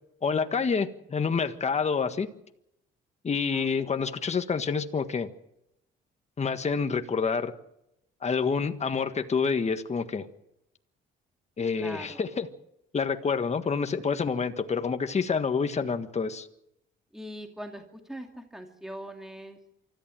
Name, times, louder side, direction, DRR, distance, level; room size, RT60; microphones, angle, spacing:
voice 1, 0.2-2.3 3.2-5.3 6.4-7.5 8.2-10.3 11.6-12.5 12.9-16.5, left 5 dB, 35° left, 8 dB, 1.6 m, -28 dB
voice 2, 3.5-3.9 11.8-12.2 17.1-19.6, equal, ahead, 4 dB, 2.4 m, -42 dB
24.5 x 14.0 x 7.7 m, 0.81 s
cardioid pair, 90°, 20 cm